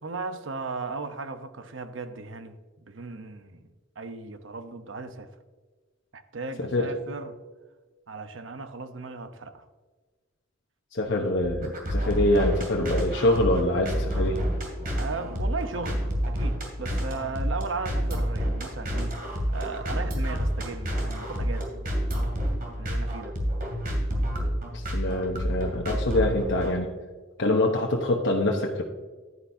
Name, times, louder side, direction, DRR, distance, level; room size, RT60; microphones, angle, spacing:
voice 1, 0.0-2.6 2.8-3.7 4.0-5.3 6.1-7.4 8.1-9.7 15.0-19.1 19.5-21.7 22.8-23.4, right 3 dB, 75° right, 9 dB, 0.9 m, -36 dB
voice 2, 10.9-14.4 24.7-26.9 27.4-28.8, left 1 dB, 65° left, 0 dB, 1.0 m, -25 dB
sound 1, 11.4-26.8, equal, 50° right, 2.8 m, -29 dB
11.0 x 9.9 x 2.7 m, 1.4 s
head